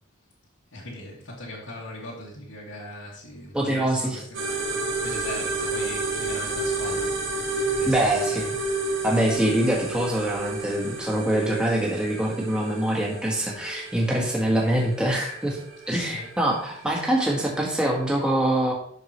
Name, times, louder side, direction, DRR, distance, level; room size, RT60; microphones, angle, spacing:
voice 1, 0.7-8.5 15.9-16.3, left 1 dB, 80° left, -7 dB, 2.0 m, -40 dB
voice 2, 3.5-4.2 7.9-8.5 9.0-15.6 15.9-18.7, right 1 dB, 5° right, -3 dB, 1.5 m, -24 dB
sound 1, 4.3-18.1, right 3 dB, 65° right, 2.0 m, -31 dB
11.0 x 6.6 x 3.1 m, 0.64 s
head